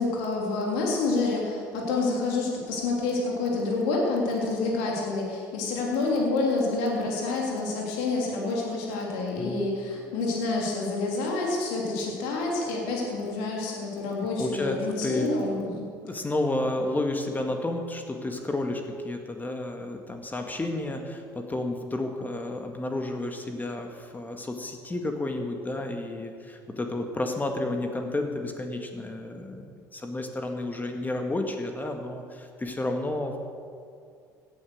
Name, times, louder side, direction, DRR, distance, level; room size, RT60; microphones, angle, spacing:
voice 1, 0.0-15.7, left 3 dB, 70° left, -2 dB, 3.1 m, -28 dB
voice 2, 9.4-9.7 14.4-15.3 15.7-33.4, left 2 dB, 20° left, 4 dB, 1.9 m, -31 dB
16.5 x 9.5 x 6.6 m, 2.3 s
figure-of-eight pair, 60°, 10 cm